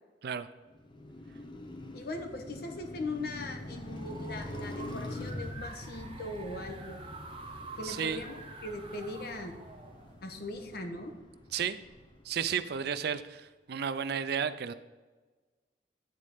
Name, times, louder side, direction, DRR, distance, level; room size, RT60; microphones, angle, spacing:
Car passing by, 0.7-12.9, left 1 dB, 30° left, 0.7 m, -45 dB
voice 1, 1.9-7.0 7.8-9.5 10.2-11.1, left 2 dB, 60° left, 4 dB, 1.0 m, -40 dB
sound 1, 3.5-10.7, right 3 dB, 30° right, 0.8 m, -48 dB
voice 2, 7.8-8.2 11.5-11.8 12.2-14.7, right 7 dB, 65° right, 11 dB, 0.4 m, -33 dB
9.3 x 4.2 x 4.9 m, 1.3 s
head